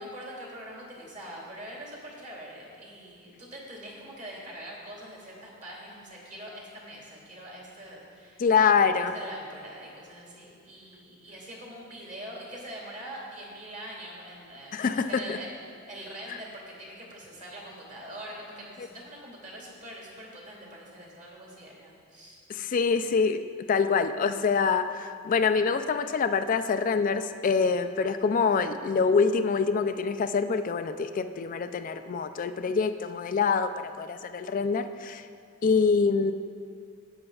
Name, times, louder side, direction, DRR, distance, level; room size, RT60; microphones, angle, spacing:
voice 1, 0.0-8.4 8.8-22.4, right 1 dB, 40° right, -3 dB, 2.0 m, -43 dB
voice 2, 8.4-9.1 14.7-15.4 16.3-16.4 22.5-23.4 23.7-35.2 35.6-36.3, left 5 dB, 40° left, 10 dB, 0.3 m, -25 dB
13.0 x 8.7 x 2.4 m, 2.2 s
head